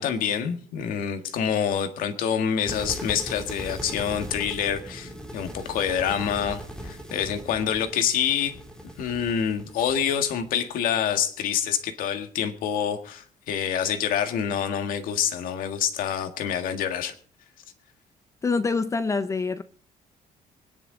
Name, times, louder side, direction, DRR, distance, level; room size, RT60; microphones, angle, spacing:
voice 1, 0.0-8.5 9.0-17.1, left 8 dB, 80° left, 1.7 m, -27 dB
sound 1, 2.6-10.7, equal, 5° left, 3.1 m, -39 dB
voice 2, 18.4-19.6, left 4 dB, 20° left, 0.6 m, -25 dB
24.0 x 10.5 x 3.9 m
cardioid pair, 150°, 14 cm